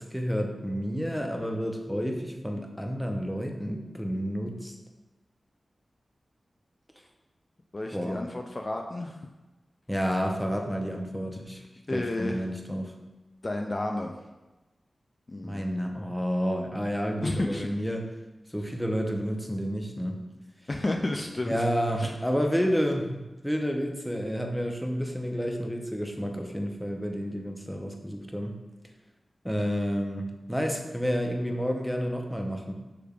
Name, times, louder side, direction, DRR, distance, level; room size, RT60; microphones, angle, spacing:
voice 1, 0.0-4.7 7.9-8.2 9.9-11.6 11.9-12.9 15.4-18.1 18.5-20.2 21.5-28.6 29.4-32.7, equal, ahead, 2 dB, 0.7 m, -30 dB
voice 2, 7.7-9.2 11.9-12.5 13.4-14.1 15.3-15.7 17.2-17.7 20.7-21.6 22.0-22.1, left 2 dB, 40° left, 2 dB, 0.4 m, -31 dB
6.6 x 3.4 x 2.4 m, 1.1 s
cardioid pair, 50°, 0 cm